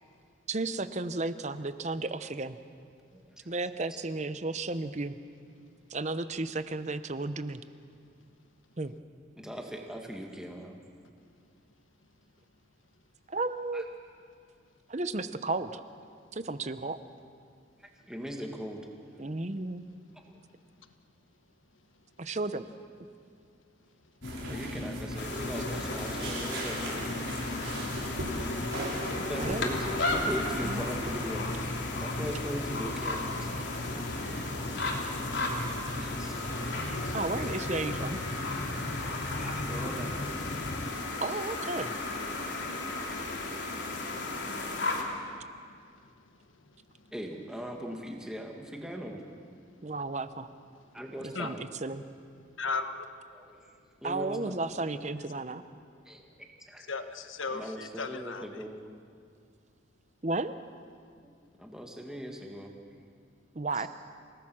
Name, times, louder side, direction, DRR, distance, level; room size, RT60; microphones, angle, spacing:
voice 1, 0.5-2.6 3.5-5.2 5.9-7.6 8.8-8.9 13.3-13.9 14.9-15.8 16.3-17.0 19.2-19.8 22.2-22.6 29.4-29.7 30.6-30.9 37.1-38.2 41.2-41.9 49.8-50.5 51.2-52.0 54.0-55.6 60.2-60.6 63.5-63.9, right 3 dB, 35° right, 12 dB, 0.8 m, -33 dB
voice 2, 3.1-3.5 3.9-4.0 8.9-9.0 9.4-10.8 13.7-13.8 17.8-18.9 20.3-20.4 24.5-27.2 29.2-31.6 32.0-33.3 34.2-34.6 34.9-36.4 36.7-37.2 39.4-40.1 47.1-49.2 50.9-51.6 53.3-53.7 54.0-54.6 56.1-56.9 57.5-58.8 61.2-61.3 61.6-62.7 63.7-63.9, equal, 5° right, 1 dB, 1.8 m, -40 dB
sound 1, 24.2-40.9, left 1 dB, 45° left, 0.8 m, -38 dB
sound 2, 24.2-31.2, right 1 dB, 85° right, 5.1 m, -40 dB
raven calls, 25.2-45.0, left 2 dB, 65° left, 3.1 m, -35 dB
voice 3, 52.6-53.1 56.9-58.5, left 4 dB, 90° left, 8 dB, 1.3 m, -37 dB
28.5 x 18.5 x 6.3 m, 2.3 s
head